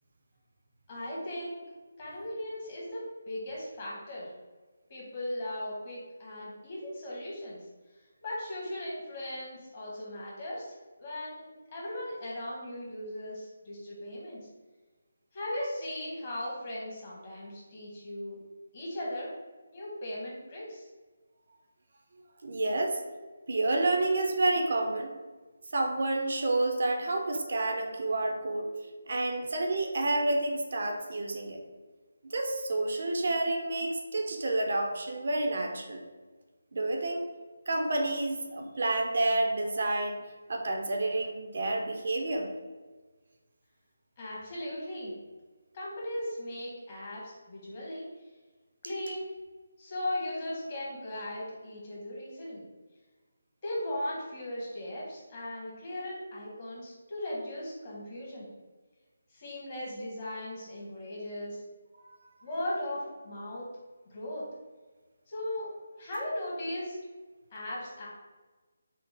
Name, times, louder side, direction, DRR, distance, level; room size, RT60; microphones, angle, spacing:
voice 1, 0.9-1.6 2.0-4.3 4.9-7.6 8.2-14.4 15.3-18.4 18.7-19.3 19.7-20.9 44.2-45.1 45.7-48.3 48.8-49.3 49.8-52.6 53.6-58.5 59.3-61.6 62.4-63.7 64.1-64.5 65.3-65.7 66.0-67.0 67.5-68.1, left 1 dB, 35° left, -5 dB, 1.1 m, -37 dB
voice 2, 22.4-23.0 23.5-25.1 25.7-28.7 29.1-31.6 32.2-36.0 36.7-37.2 37.7-40.2 40.5-42.5 62.0-62.2, right 2 dB, 55° right, 3 dB, 0.4 m, -29 dB
3.4 x 2.0 x 3.3 m, 1.3 s
figure-of-eight pair, 155°, 0 cm